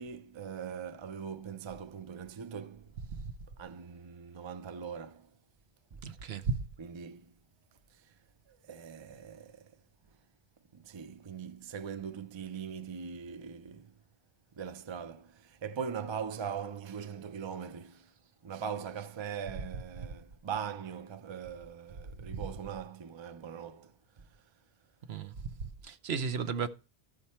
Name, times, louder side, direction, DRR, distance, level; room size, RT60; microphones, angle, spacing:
voice 1, 0.0-3.0 3.6-5.3 5.9-6.0 6.8-7.3 7.9-8.2 8.5-9.8 10.7-14.0 14.5-18.1 18.4-24.5, right 7 dB, 35° right, 0.5 m, -41 dB
voice 2, 6.0-6.6 22.3-22.4 25.1-25.4 25.8-26.7, right 5 dB, 70° right, 1.0 m, -34 dB
13.0 x 5.1 x 4.3 m
omnidirectional pair, 1.1 m